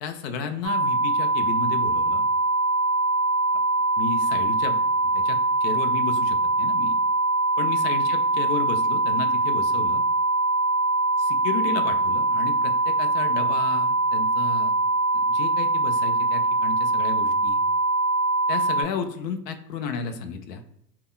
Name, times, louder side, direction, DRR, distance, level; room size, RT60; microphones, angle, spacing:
voice 1, 0.0-2.2 4.0-4.8 5.1-6.9 7.6-10.0 11.2-14.7 15.1-17.6 18.5-20.6, left 5 dB, 75° left, 8 dB, 0.6 m, -33 dB
sound 1, 0.6-18.8, right 2 dB, ahead, 0.7 m, -23 dB
2.2 x 2.0 x 3.6 m, 0.76 s
hypercardioid pair, 100°, 49 cm